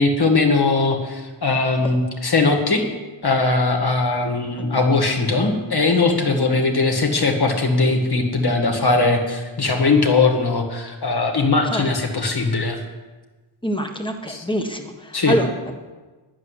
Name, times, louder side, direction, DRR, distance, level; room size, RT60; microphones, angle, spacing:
voice 1, 0.0-2.8 3.2-12.8 14.3-14.5 15.1-15.4, left 3 dB, 50° left, 3 dB, 2.0 m, -20 dB
voice 2, 13.6-15.5, equal, 10° left, 4 dB, 1.5 m, -25 dB
11.0 x 7.4 x 9.8 m, 1.3 s
wide cardioid pair, 105°, 47 cm